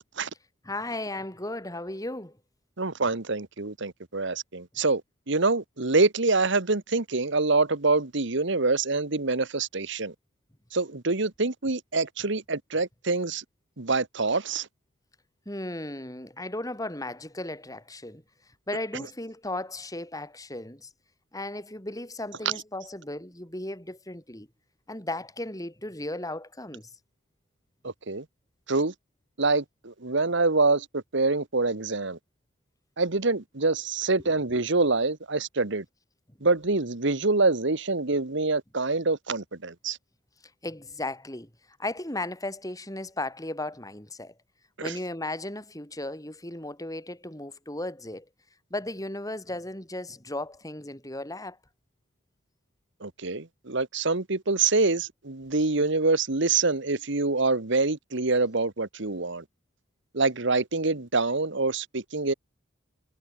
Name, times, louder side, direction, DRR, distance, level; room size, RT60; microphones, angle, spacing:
voice 1, 0.6-2.4 15.5-18.2 18.7-20.9 21.3-24.5 24.9-26.9 40.6-41.5 41.8-44.3 44.8-48.3 48.7-51.6, left 1 dB, 15° left, 5.7 m, -35 dB
voice 2, 2.8-5.0 5.3-10.1 10.7-13.4 13.8-14.7 27.8-28.2 28.7-28.9 29.4-32.2 33.0-35.8 36.4-40.0 44.8-44.9 53.0-59.4 60.1-62.3, right 3 dB, 60° right, 1.5 m, -25 dB
head